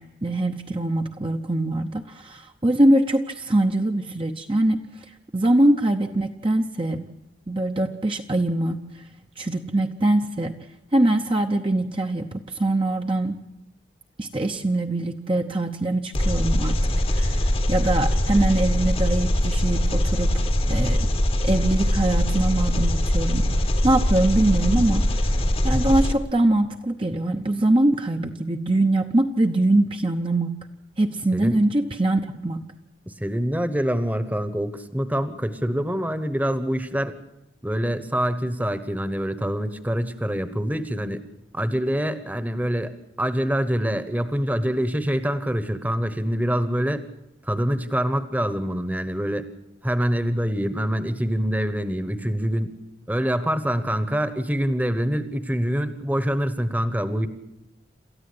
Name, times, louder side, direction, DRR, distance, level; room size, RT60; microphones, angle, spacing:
voice 1, 0.0-7.0 7.5-9.1 9.4-10.6 10.9-13.4 14.2-21.1 21.4-30.6 31.0-32.6, right 1 dB, 30° right, 4 dB, 0.8 m, -23 dB
Engine, 16.1-26.1, left 1 dB, 30° left, 1.0 m, -22 dB
voice 2, 33.1-37.1 37.6-41.2 41.5-42.9 43.2-47.0 47.4-49.5 49.8-52.7 53.1-57.3, equal, 10° right, 11 dB, 1.1 m, -25 dB
28.0 x 14.0 x 8.6 m, 0.90 s
head